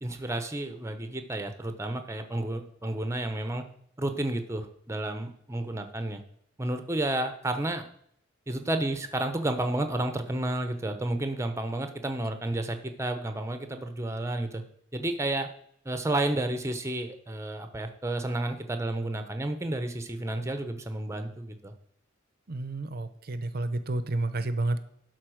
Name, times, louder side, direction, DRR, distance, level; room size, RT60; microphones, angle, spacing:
voice 1, 0.0-3.6 4.0-6.2 6.6-7.8 8.5-14.6 14.9-15.5 15.8-21.7, right 1 dB, 15° right, 7 dB, 0.9 m, -31 dB
voice 2, 22.5-24.8, right 2 dB, 50° right, 12 dB, 0.7 m, -30 dB
11.5 x 4.1 x 6.4 m, 0.69 s
head